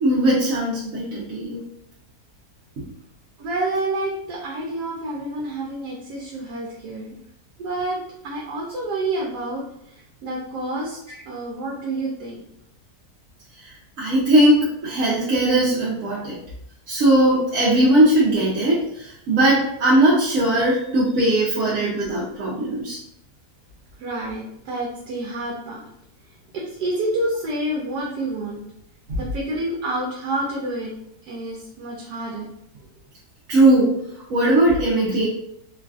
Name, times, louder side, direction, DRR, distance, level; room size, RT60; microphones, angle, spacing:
voice 1, 0.0-1.6 2.8-2.9 13.6-16.4 16.9-23.0 29.1-29.2 33.5-34.0 34.3-35.3, right 1 dB, 65° right, -7 dB, 0.9 m, -19 dB
voice 2, 3.4-7.2 7.6-8.0 8.2-11.0 11.3-12.4 24.0-25.9 26.5-28.6 29.2-30.9 31.2-32.5, right 2 dB, 80° right, -3 dB, 1.2 m, -28 dB
3.1 x 2.4 x 2.3 m, 0.76 s
omnidirectional pair, 1.7 m